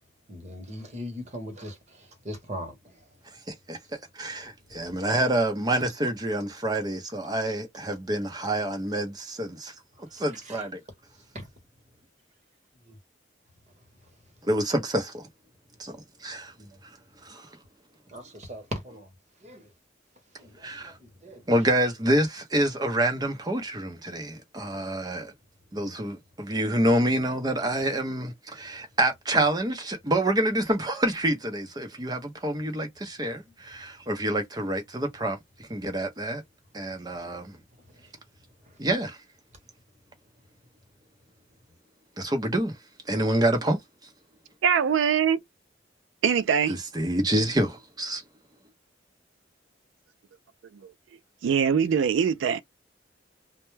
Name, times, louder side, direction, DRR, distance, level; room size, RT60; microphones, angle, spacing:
voice 1, 0.3-2.8 4.7-4.9 10.5-10.6 12.9-13.0 16.6-16.7 18.1-19.1 19.4-19.7 20.4-21.4, equal, 35° right, 1.0 m, -39 dB
voice 2, 3.5-3.8 4.1-9.7 10.1-10.8 14.4-15.2 15.8-16.5 17.2-17.5 20.6-20.9 21.5-25.3 25.7-36.4 36.7-37.6 38.8-39.2 42.2-42.8 43.1-43.8 46.7-48.2, right 1 dB, 20° right, 0.6 m, -27 dB
voice 3, 44.6-45.4 46.2-46.7 51.4-52.6, right 7 dB, 85° right, 0.3 m, -22 dB
2.1 x 2.1 x 3.1 m
head